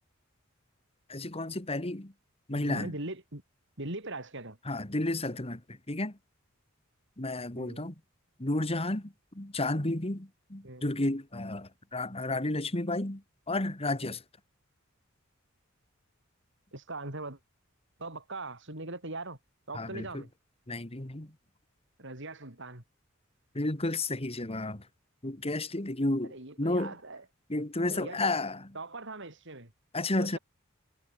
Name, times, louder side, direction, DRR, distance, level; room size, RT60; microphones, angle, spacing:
voice 1, 1.1-2.1 2.5-2.9 4.7-6.2 7.2-7.9 8.4-14.2 19.7-20.2 20.7-21.3 23.5-24.8 25.2-26.9 27.5-28.7 29.9-30.4, left 2 dB, 30° left, 2.1 m, -32 dB
voice 2, 2.6-3.4 3.8-4.6 7.6-7.9 10.6-10.9 16.7-17.4 18.0-19.4 19.7-20.3 22.0-22.8 26.3-27.2 27.8-28.3 28.7-29.7 30.2-30.4, right 2 dB, 65° right, 6.1 m, -41 dB
head